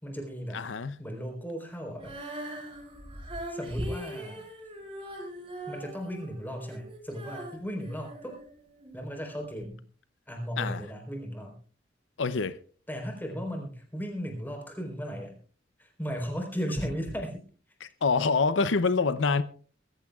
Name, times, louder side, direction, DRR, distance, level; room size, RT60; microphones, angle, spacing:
voice 1, 0.0-0.6 1.0-2.2 3.5-4.4 5.7-8.4 8.9-9.8 10.3-11.6 12.9-15.4 15.8-17.4, equal, 10° left, 4.1 m, -36 dB
voice 2, 0.5-0.9 10.6-10.8 12.2-12.6 17.8-19.4, left 4 dB, 85° left, 0.6 m, -26 dB
Female singing, 1.9-9.0 9.6-9.7, right 1 dB, 30° right, 5.9 m, -41 dB
22.5 x 14.5 x 2.4 m
head